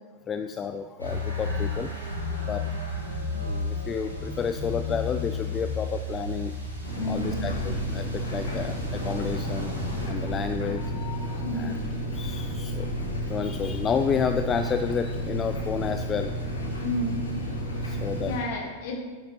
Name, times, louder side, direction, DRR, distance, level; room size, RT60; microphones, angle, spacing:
voice 1, 0.3-2.7 3.4-6.5 7.1-11.7 12.1-12.9 13.3-16.5 17.8-18.3, left 7 dB, 25° left, 8 dB, 0.3 m, -31 dB
sound 1, 1.0-10.1, left 2 dB, 90° left, 1.8 m, -33 dB
sound 2, 6.8-18.4, right 1 dB, 75° left, 1.8 m, -31 dB
voice 2, 7.0-7.4 11.4-11.8 16.8-17.2 18.2-19.0, left 1 dB, 50° left, 1 dB, 1.7 m, -31 dB
9.3 x 8.9 x 3.1 m, 1.4 s
figure-of-eight pair, 90°, 0 cm